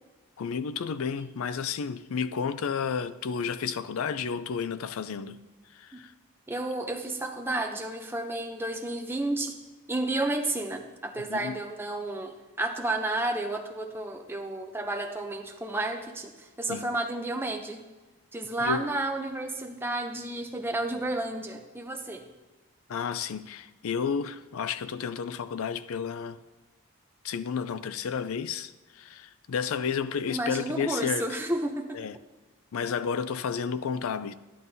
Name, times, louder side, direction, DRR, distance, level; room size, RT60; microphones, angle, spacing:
voice 1, 0.4-5.4 5.7-6.1 11.3-11.6 16.7-16.9 18.6-18.9 22.9-26.4 27.2-31.4 31.9-32.2 32.7-34.3, left 6 dB, 70° left, 0.4 m, -31 dB
voice 2, 6.5-9.6 9.9-17.8 18.3-22.3 30.3-32.0, right 2 dB, 10° right, 0.5 m, -31 dB
10.5 x 10.5 x 2.7 m
head